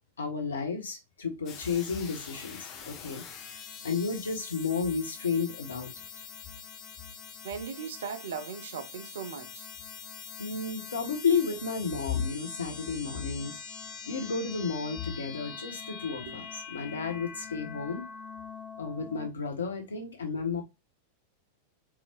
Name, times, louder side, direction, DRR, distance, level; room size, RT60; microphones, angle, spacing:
voice 1, 0.2-3.2 3.8-5.9 10.4-13.6 14.1-18.0 18.8-20.6, left 5 dB, 70° left, 1.4 m, -32 dB
sound 1, 1.5-19.3, left 6 dB, 35° left, 0.9 m, -44 dB
voice 2, 7.4-9.7 16.2-16.4, right 6 dB, 60° right, 0.8 m, -38 dB
4.7 x 3.5 x 2.5 m
figure-of-eight pair, 90°, 0 cm